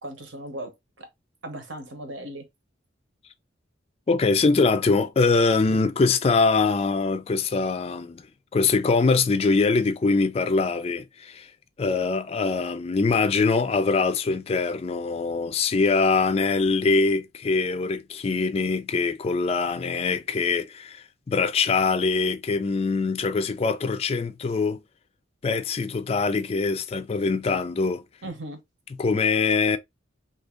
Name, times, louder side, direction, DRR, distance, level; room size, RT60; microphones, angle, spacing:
voice 1, 0.0-1.1 1.4-2.5 28.2-28.6, right 1 dB, 70° right, 1.0 m, -37 dB
voice 2, 4.1-8.2 8.5-11.5 11.8-24.8 25.4-28.0 29.0-29.8, left 4 dB, 30° left, 0.3 m, -23 dB
2.7 x 2.5 x 3.6 m
head